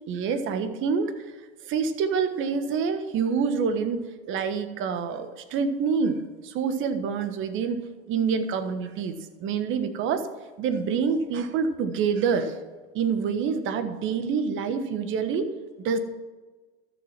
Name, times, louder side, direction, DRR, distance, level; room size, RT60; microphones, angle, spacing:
voice 1, 0.1-1.1 1.7-4.0 4.3-6.2 6.4-10.3 10.6-12.5 12.9-15.5 15.8-16.0, right 6 dB, 35° right, 9 dB, 1.4 m, -26 dB
13.0 x 7.0 x 6.0 m, 1.3 s
hypercardioid pair, 110°, 34 cm